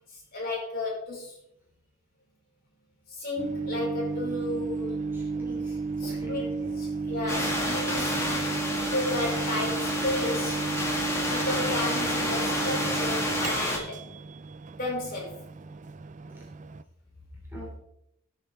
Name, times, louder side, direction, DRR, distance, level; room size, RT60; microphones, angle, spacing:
voice 1, 0.3-1.3 3.1-5.0 6.0-6.4 6.8-8.2 8.9-10.6 11.3-14.0 14.8-15.3, left 2 dB, 45° left, -4 dB, 5.3 m, -33 dB
Microwave oven, 3.4-16.8, right 4 dB, 35° right, 0.4 m, -33 dB
voice 2, 5.1-5.8 6.0-6.5 16.3-16.4 17.5-17.8, equal, 10° right, -4 dB, 3.1 m, -43 dB
sound 1, 7.3-13.8, left 1 dB, 15° left, 2.1 m, -30 dB
19.0 x 7.0 x 3.5 m, 0.76 s
head